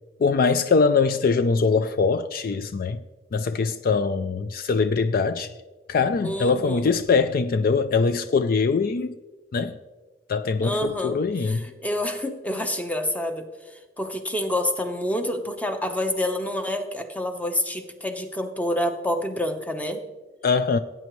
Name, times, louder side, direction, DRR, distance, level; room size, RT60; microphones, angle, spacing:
voice 1, 0.2-3.0 3.3-5.5 5.9-9.2 9.5-9.8 10.3-11.6 20.4-20.8, left 4 dB, 55° left, 0.4 m, -22 dB
voice 2, 6.2-6.9 10.6-11.2 11.4-13.4 14.0-20.0, left 1 dB, 10° left, 0.9 m, -27 dB
17.0 x 9.1 x 3.1 m
head